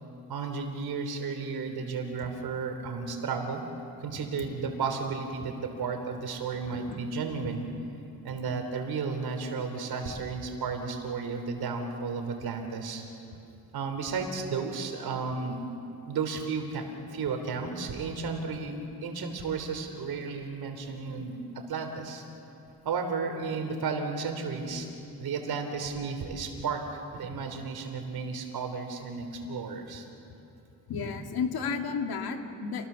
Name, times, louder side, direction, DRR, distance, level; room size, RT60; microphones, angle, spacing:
voice 1, 0.3-3.6 4.0-7.7 8.2-13.0 13.7-15.6 16.0-16.8 17.1-22.2 22.9-24.9 25.2-26.8 27.1-30.1, right 5 dB, 75° right, 5 dB, 3.6 m, -33 dB
voice 2, 30.9-32.9, left 5 dB, 75° left, 4 dB, 2.3 m, -32 dB
28.0 x 19.5 x 7.0 m, 2.7 s
cardioid pair, 85°, 37 cm